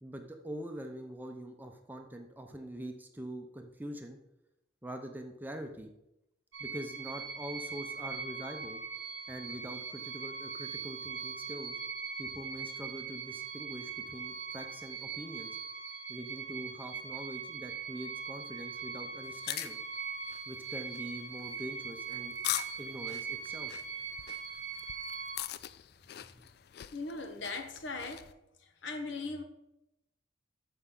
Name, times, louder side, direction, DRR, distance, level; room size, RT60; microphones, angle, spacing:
voice 1, 0.0-4.2 4.8-5.9 6.6-8.8 9.3-11.8 12.2-15.6 16.1-19.8 20.5-22.3 22.8-23.7 26.2-26.5, right 1 dB, 10° right, 4 dB, 0.7 m, -44 dB
sound 1, 6.5-25.4, right 5 dB, 65° right, 0.9 m, -41 dB
sound 2, 19.2-28.3, left 12 dB, 50° left, 0.3 m, -42 dB
voice 2, 26.9-28.3 28.8-29.4, left 3 dB, 65° left, 6 dB, 1.1 m, -38 dB
13.0 x 5.5 x 3.8 m, 0.88 s
head